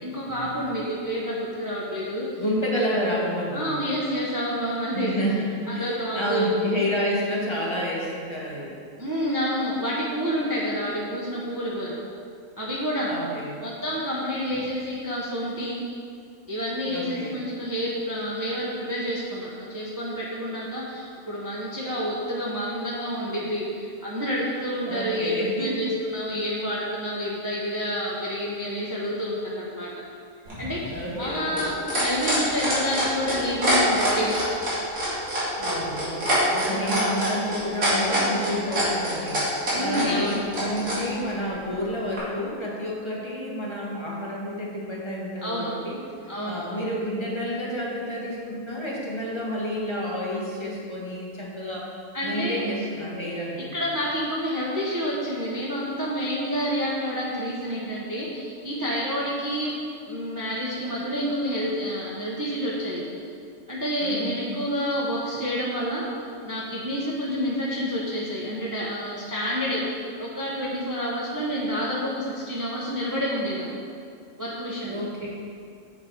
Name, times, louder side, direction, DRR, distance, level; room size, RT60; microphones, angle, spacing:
voice 1, 0.0-2.4 3.5-5.1 5.7-6.5 9.0-12.0 12.6-13.1 13.6-15.8 16.5-29.9 30.6-34.4 36.6-37.0 39.7-40.3 45.4-45.7 46.3-46.6 52.1-52.7 53.6-59.8 60.1-63.0 63.7-66.0 66.4-73.7 74.4-75.0, equal, 15° right, -6 dB, 0.8 m, -29 dB
voice 2, 2.4-3.8 4.9-8.7 13.1-13.6 16.9-17.4 24.9-25.8 30.9-31.7 35.6-39.5 39.8-46.0 46.4-51.9 52.2-53.7 64.0-64.4 74.9-75.3, equal, 20° left, -5 dB, 1.3 m, -30 dB
sound 1, 30.5-41.0 42.2-42.3, right 1 dB, 80° right, 2.9 m, -25 dB
7.3 x 6.6 x 4.5 m, 2.3 s
omnidirectional pair, 1.4 m